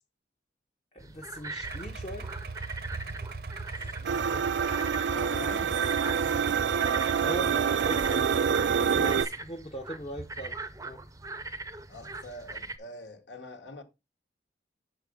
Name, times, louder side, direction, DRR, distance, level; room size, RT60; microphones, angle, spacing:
voice 1, 0.9-2.3 7.2-7.5 7.8-8.0 8.9-10.6 10.8-11.0, right 1 dB, 35° left, 0.7 m, -39 dB
sound 1, 1.0-12.8, right 3 dB, 20° right, 0.6 m, -41 dB
Idling, 1.6-9.2, right 3 dB, 55° right, 0.7 m, -39 dB
voice 2, 3.8-4.5 5.1-5.8 6.2-6.7 7.4-9.2 11.9-13.8, left 1 dB, 85° left, 1.2 m, -45 dB
sound 2, 4.0-9.3, right 7 dB, 80° right, 0.4 m, -26 dB
6.6 x 4.8 x 5.0 m
head